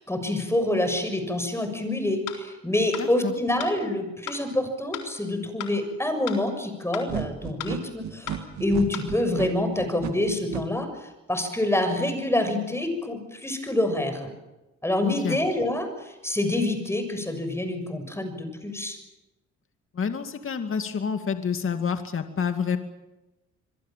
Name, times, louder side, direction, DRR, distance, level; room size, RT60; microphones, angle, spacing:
voice 1, 0.0-14.3 14.8-19.0, left 1 dB, 10° left, 8 dB, 6.7 m, -27 dB
sound 1, 2.3-2.4 2.9-3.1 3.6-3.7 4.3-4.4 4.9-5.1 5.6-5.7 6.3-6.4 6.9-7.1 7.6-7.7 8.3-8.4 8.9-9.1, left 10 dB, 80° left, 3.9 m, -35 dB
voice 2, 3.0-3.3 15.0-15.4 19.9-22.8, left 6 dB, 45° left, 7 dB, 2.3 m, -28 dB
sound 2, 7.1-10.6, right 9 dB, 70° right, 2.6 m, -33 dB
26.5 x 22.0 x 7.6 m, 1.0 s
cardioid pair, 90°, 30 cm